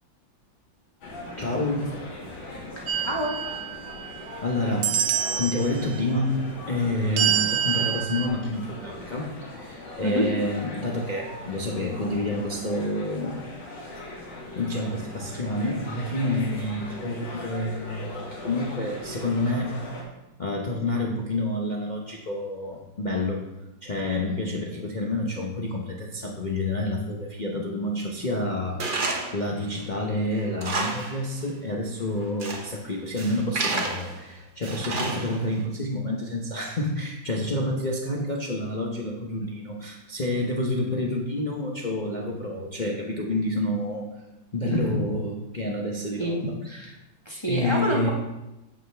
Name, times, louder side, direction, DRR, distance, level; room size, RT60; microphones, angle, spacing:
sound 1, 1.0-20.0, left 2 dB, 85° left, 2.7 m, -40 dB
voice 1, 1.4-1.9 4.4-5.0 5.4-6.4 6.7-13.4 14.6-19.7 20.4-23.5 23.8-29.0 29.3-44.1 44.5-46.4 47.5-48.1, left 1 dB, 50° left, -2 dB, 0.5 m, -28 dB
voice 2, 2.8-3.3 10.0-10.3 44.7-44.8 46.2-46.4 46.6-47.0 47.2-48.1, equal, 15° left, -3 dB, 1.1 m, -27 dB
sound 2, 2.9-4.4 4.8-5.7 7.2-8.3, right 10 dB, 70° right, 0.8 m, -26 dB
Tools, 28.8-29.4 29.8-29.9 30.4-31.2 31.5-31.6 32.2-32.7 33.2-34.2 34.6-35.5, right 3 dB, 40° right, 0.8 m, -30 dB
8.7 x 7.5 x 3.4 m, 0.98 s
omnidirectional pair, 2.1 m